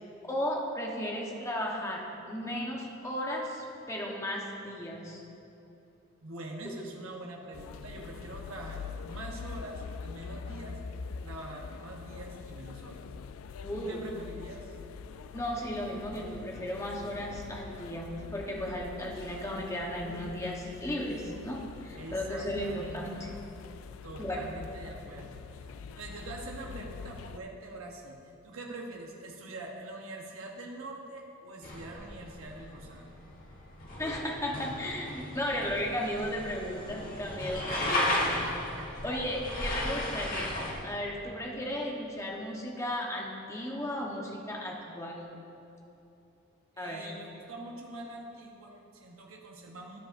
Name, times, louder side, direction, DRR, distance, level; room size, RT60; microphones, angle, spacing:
voice 1, 0.2-5.2 6.6-6.7 13.6-14.1 15.3-23.3 24.2-24.4 34.0-38.2 39.0-45.2 46.8-47.1, equal, 15° left, -1 dB, 1.0 m, -35 dB
voice 2, 6.2-10.8 11.1-13.0 13.8-14.8 21.9-23.4 24.0-25.7 26.0-33.0 37.7-38.9 46.7-50.0, right 2 dB, 90° right, 0 dB, 1.0 m, -44 dB
sound 1, 7.5-27.4, left 5 dB, 80° left, 0.3 m, -44 dB
sound 2, 31.6-40.7, left 1 dB, 40° left, 1.5 m, -35 dB
12.5 x 10.5 x 2.6 m, 3.0 s
head